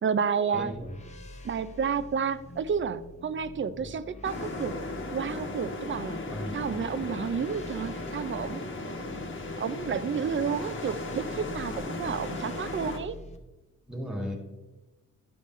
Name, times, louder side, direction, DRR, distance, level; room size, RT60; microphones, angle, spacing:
voice 1, 0.0-0.7 1.4-4.8 5.1-6.2 6.5-9.0 9.6-13.2, right 6 dB, 40° right, 14 dB, 0.4 m, -31 dB
sound 1, 0.5-13.4, left 1 dB, 20° left, 0.8 m, -46 dB
voice 2, 0.5-0.9 6.3-6.6 13.9-14.4, equal, ahead, 1 dB, 1.6 m, -35 dB
sound 2, 4.2-13.0, left 2 dB, 40° left, 1.1 m, -36 dB
11.0 x 6.9 x 3.1 m, 1.1 s
wide cardioid pair, 140°, 30 cm